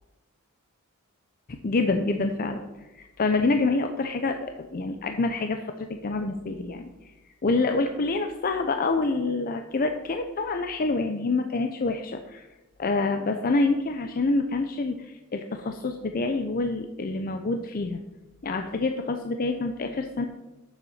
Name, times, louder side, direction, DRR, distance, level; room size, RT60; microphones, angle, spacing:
voice 1, 1.5-2.6 2.9-7.1 7.4-12.5 12.8-18.0 18.4-20.2, left 3 dB, 40° left, 6 dB, 0.6 m, -27 dB
7.2 x 6.8 x 7.1 m, 1.1 s
head